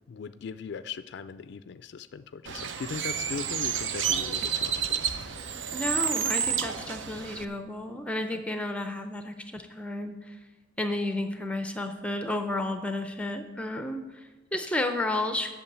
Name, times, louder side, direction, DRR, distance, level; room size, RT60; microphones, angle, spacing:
voice 1, 0.1-5.0 8.3-8.4, left 6 dB, 60° left, 11 dB, 0.3 m, -39 dB
Bird, 2.5-7.5, right 7 dB, 70° right, 0.6 m, -30 dB
voice 2, 5.7-10.4 10.8-15.5, left 1 dB, 5° left, 7 dB, 0.5 m, -32 dB
8.6 x 6.6 x 8.5 m, 1.2 s
head